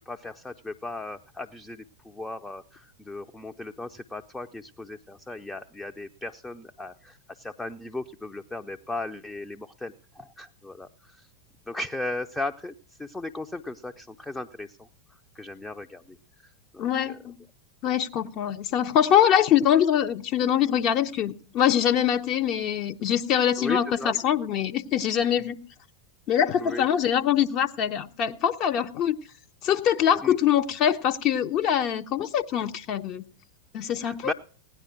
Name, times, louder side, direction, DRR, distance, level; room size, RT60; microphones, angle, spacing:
voice 1, 0.1-11.3 11.7-12.7 13.0-14.9 15.4-16.2 16.7-17.2 23.6-24.1 25.4-25.5 26.6-26.9 30.2-30.4 34.0-34.3, left 2 dB, 10° left, 6 dB, 0.6 m, -36 dB
voice 2, 16.8-17.4 17.8-25.6 26.3-29.2 29.6-33.2 33.7-34.3, left 9 dB, 35° left, 7 dB, 0.8 m, -23 dB
17.0 x 10.0 x 5.9 m, 0.40 s
figure-of-eight pair, 90°, 0 cm